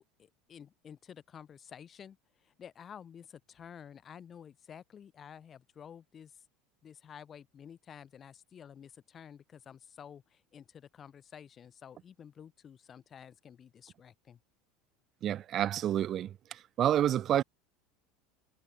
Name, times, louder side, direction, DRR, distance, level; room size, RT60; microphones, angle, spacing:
voice 1, 0.0-6.4 6.8-14.4, left 8 dB, 35° left, 7.4 m, -51 dB
voice 2, 15.2-17.4, right 11 dB, 45° right, 0.4 m, -29 dB
hypercardioid pair, 80°, 0 cm